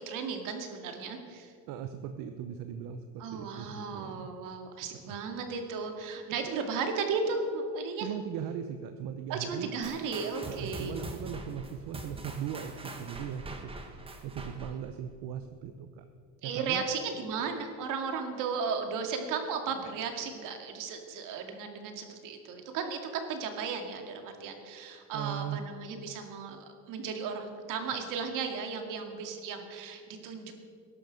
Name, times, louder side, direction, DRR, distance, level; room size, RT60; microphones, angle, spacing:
voice 1, 0.0-1.5 3.2-8.1 9.3-10.9 16.4-30.5, right 5 dB, 70° right, 5 dB, 2.2 m, -35 dB
voice 2, 1.7-4.3 5.0-5.2 8.0-9.7 10.5-13.7 14.0-16.0 16.4-16.8 25.1-25.6, right 9 dB, 85° right, 8 dB, 0.9 m, -39 dB
sound 1, 9.8-14.9, right 2 dB, 15° right, 1.3 m, -43 dB
20.0 x 11.5 x 5.3 m, 2.2 s
cardioid pair, 165°, 33 cm